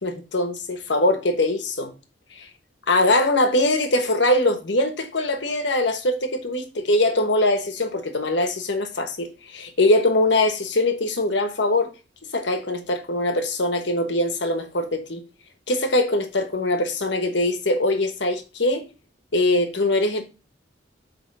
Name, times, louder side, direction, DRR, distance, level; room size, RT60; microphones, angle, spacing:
voice 1, 0.0-1.9 2.4-2.5 2.9-6.6 6.9-11.9 12.3-15.2 15.7-18.9 19.3-20.2, left 2 dB, 70° left, 1.2 m, -22 dB
7.9 x 3.3 x 5.4 m
head